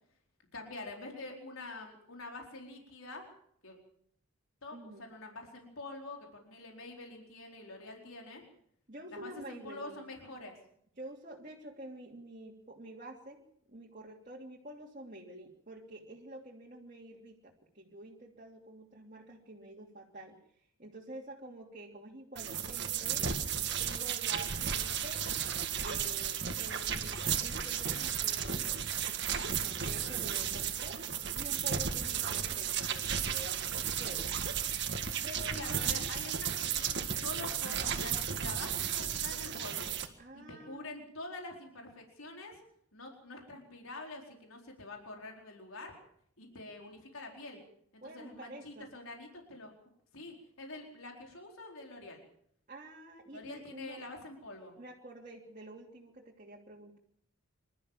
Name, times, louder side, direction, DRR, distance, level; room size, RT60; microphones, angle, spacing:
voice 1, 0.5-3.3 3.6-3.8 4.6-8.5 9.1-10.6 32.1-32.2 35.6-39.9 40.3-42.6 42.9-45.9 46.4-47.6 47.9-49.7 50.1-52.2 53.3-54.7, left 2 dB, 75° left, 1 dB, 4.5 m, -46 dB
voice 2, 4.7-5.0 8.9-10.0 11.0-13.4 13.7-20.4 20.8-23.4 23.8-25.3 25.8-28.9 29.4-31.0 31.4-34.3 35.2-36.1 40.2-40.8 48.0-48.9 52.7-54.1 54.8-57.0, right 1 dB, 35° right, -3 dB, 2.9 m, -48 dB
sound 1, 22.4-40.1, right 8 dB, 50° right, 1.8 m, -34 dB
26.5 x 13.5 x 7.4 m, 0.68 s
head